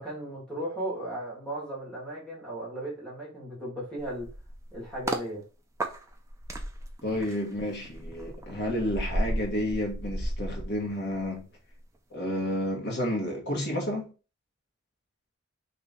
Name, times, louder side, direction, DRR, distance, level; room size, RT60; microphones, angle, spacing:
voice 1, 0.0-4.3 4.7-5.4, right 1 dB, 5° left, 1.5 m, -36 dB
sound 1, 4.0-5.3 5.8-11.4 11.7-12.0, right 1 dB, 15° right, 0.3 m, -34 dB
voice 2, 7.0-11.5 12.1-14.1, left 1 dB, 50° left, 1.1 m, -31 dB
2.9 x 2.6 x 3.5 m
head